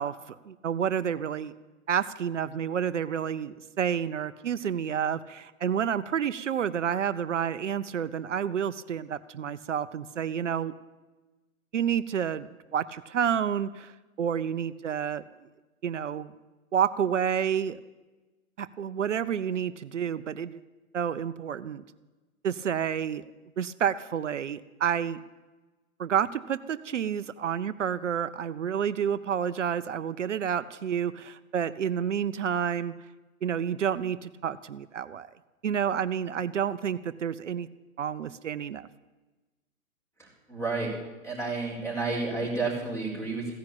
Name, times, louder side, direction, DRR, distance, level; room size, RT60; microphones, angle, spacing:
voice 1, 0.0-1.5 1.9-10.7 11.7-13.9 14.2-15.2 15.8-16.3 16.7-17.8 18.6-20.6 20.9-21.8 22.4-23.3 23.6-25.2 26.0-33.0 33.4-35.3 35.6-37.7 38.0-38.9, right 8 dB, 60° right, 14 dB, 0.7 m, -29 dB
voice 2, 40.2-40.9 41.2-43.5, right 3 dB, 5° left, -1 dB, 4.4 m, -31 dB
15.5 x 10.5 x 8.7 m, 1.2 s
figure-of-eight pair, 125°, 42 cm